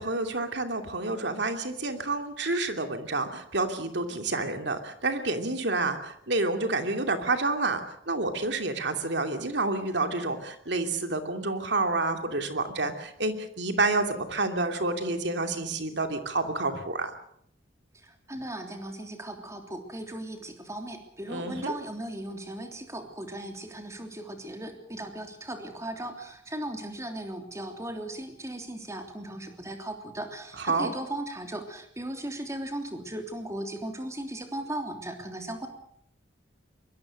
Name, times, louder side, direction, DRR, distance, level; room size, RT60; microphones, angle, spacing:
voice 1, 0.0-7.8 8.1-17.1 21.3-21.7 30.6-30.9, right 3 dB, 65° right, 6 dB, 2.8 m, -29 dB
voice 2, 18.0-35.7, right 1 dB, 15° right, 4 dB, 3.2 m, -37 dB
24.0 x 21.5 x 6.5 m, 0.68 s
head